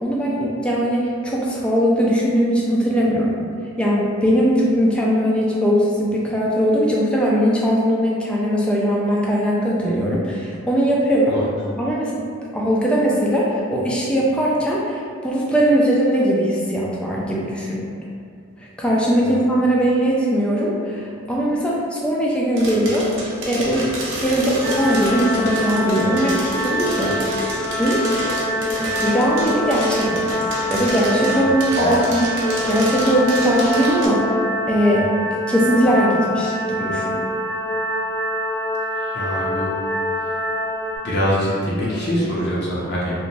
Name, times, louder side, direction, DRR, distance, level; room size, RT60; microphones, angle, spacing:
voice 1, 0.0-3.4 3.8-11.4 11.8-12.3 12.5-17.8 18.8-23.1 23.5-23.9 24.2-27.1 27.8-28.1 28.5-30.3 30.7-34.3 34.7-35.1 35.5-37.2, equal, 5° left, -5 dB, 0.3 m, -20 dB
sound 1, 22.6-34.1, right 1 dB, 60° right, 0.5 m, -29 dB
sound 2, 24.6-41.0, left 1 dB, 10° right, 0.8 m, -25 dB
voice 2, 31.4-32.0 39.1-39.7 41.0-43.1, equal, 50° left, -7 dB, 0.5 m, -24 dB
2.9 x 2.2 x 2.7 m, 2.3 s
head